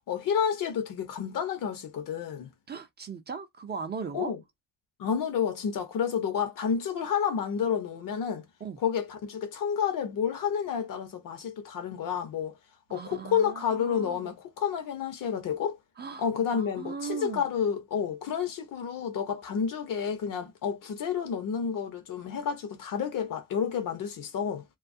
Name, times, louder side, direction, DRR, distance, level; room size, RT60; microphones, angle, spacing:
voice 1, 0.1-2.5 4.1-4.4 5.0-8.5 8.8-12.6 12.9-15.8 16.2-24.6, left 7 dB, 70° left, 0.8 m, -30 dB
voice 2, 2.7-4.3 8.6-8.8 12.9-14.3 16.0-17.5, right 6 dB, 30° right, 0.4 m, -38 dB
2.6 x 2.3 x 2.6 m
cardioid pair, 160°, 34 cm